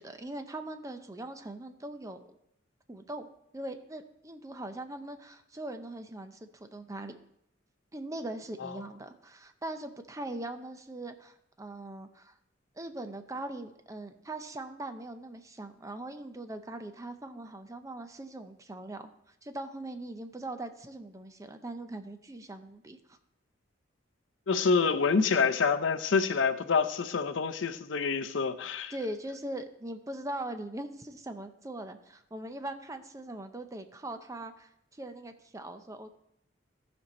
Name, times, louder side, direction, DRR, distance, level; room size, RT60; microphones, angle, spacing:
voice 1, 0.0-2.4 2.9-3.3 3.5-7.2 7.9-12.4 12.8-23.2 28.9-36.1, right 1 dB, 15° right, 0.5 m, -41 dB
voice 2, 24.5-28.9, left 5 dB, 75° left, 0.6 m, -27 dB
14.5 x 5.3 x 4.2 m
head